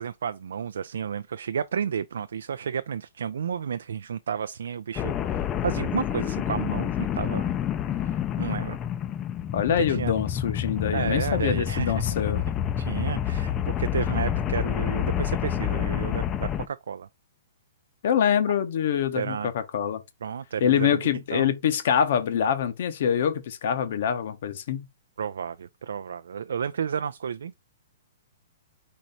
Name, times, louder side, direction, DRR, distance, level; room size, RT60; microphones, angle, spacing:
voice 1, 0.0-7.5 8.0-8.8 9.9-10.1 10.9-12.1 12.8-17.1 19.2-19.5 20.2-21.5 25.2-27.5, right 7 dB, 80° right, 0.3 m, -32 dB
sound 1, 5.0-16.7, left 10 dB, 25° left, 0.4 m, -28 dB
voice 2, 9.5-12.4 18.0-20.0 20.6-24.9, left 8 dB, 65° left, 0.9 m, -25 dB
4.2 x 3.2 x 3.9 m
hypercardioid pair, 135°, 0 cm